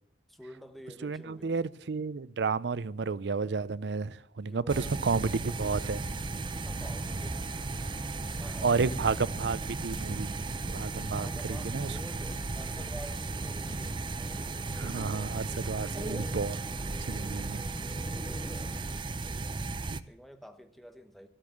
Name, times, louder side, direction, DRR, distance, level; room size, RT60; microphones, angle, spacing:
voice 1, 0.3-1.6 4.4-5.0 5.5-5.6 6.6-8.9 11.1-15.9 18.4-18.8 19.1-19.7 20.0-21.3, equal, ahead, 1.0 m, -50 dB
voice 2, 1.0-6.1 8.6-10.3 10.7-11.9 14.8-16.6 17.0-17.6 19.9-20.0, right 4 dB, 85° right, 0.5 m, -31 dB
sound 1, 4.7-20.0, right 3 dB, 25° right, 0.5 m, -35 dB
sound 2, 5.5-19.0, left 1 dB, 20° left, 0.6 m, -47 dB
sound 3, 6.7-15.3, right 2 dB, 45° right, 1.7 m, -58 dB
13.0 x 12.5 x 7.1 m
head